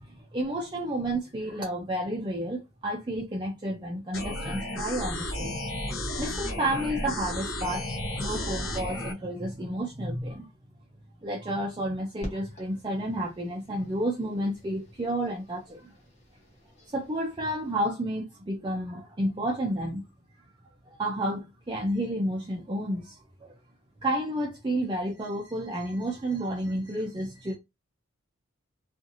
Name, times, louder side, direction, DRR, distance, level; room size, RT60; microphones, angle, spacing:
voice 1, 0.0-5.5 6.2-10.5 11.2-15.9 16.9-20.0 20.9-23.5 24.0-27.6, right 1 dB, 20° right, 0.4 m, -31 dB
sound 1, 4.1-9.1, left 1 dB, 70° left, 0.7 m, -33 dB
sound 2, 12.2-17.9, equal, 35° left, 1.0 m, -48 dB
2.6 x 2.5 x 2.5 m
head